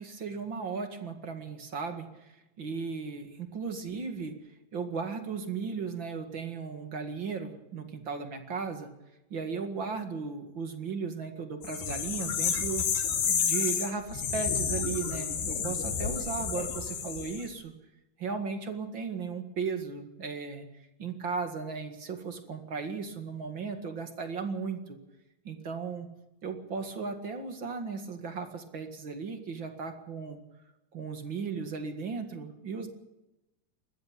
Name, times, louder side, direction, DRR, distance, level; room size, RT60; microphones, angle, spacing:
voice 1, 0.0-4.3 4.7-8.9 9.3-17.7 18.2-20.7 21.0-25.0 25.4-26.1 26.4-30.4 30.9-32.9, right 5 dB, 45° right, 6 dB, 1.7 m, -36 dB
sound 1, 11.6-17.4, left 7 dB, 75° left, 4.5 m, -30 dB
21.0 x 15.0 x 9.0 m, 0.94 s
omnidirectional pair, 4.8 m